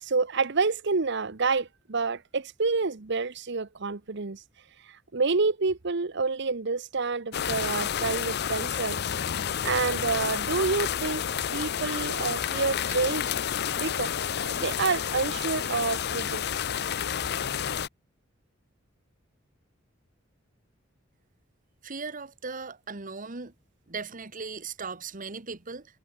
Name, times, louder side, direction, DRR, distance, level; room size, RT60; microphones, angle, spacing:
voice 1, 0.0-4.4 4.9-9.0 9.6-11.2 11.5-13.3 13.8-14.1 14.4-16.4, right 4 dB, 60° right, 1.0 m, -28 dB
sound 1, 7.3-17.9, left 8 dB, 55° left, 0.6 m, -30 dB
voice 2, 21.8-23.5 23.9-25.9, right 4 dB, 45° right, 1.5 m, -38 dB
head